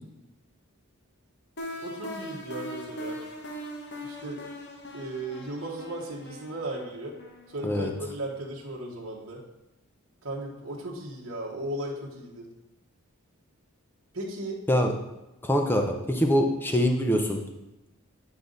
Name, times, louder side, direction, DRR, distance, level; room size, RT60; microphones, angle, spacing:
sound 1, 1.6-8.3, equal, 50° left, 1.1 m, -40 dB
voice 1, 1.8-3.2 4.0-4.4 4.9-7.1 7.5-9.4 10.2-12.5 14.1-14.6, right 1 dB, 60° right, -4 dB, 1.4 m, -36 dB
voice 2, 15.4-17.4, equal, 10° left, 3 dB, 0.7 m, -24 dB
9.2 x 5.1 x 4.0 m, 0.96 s
head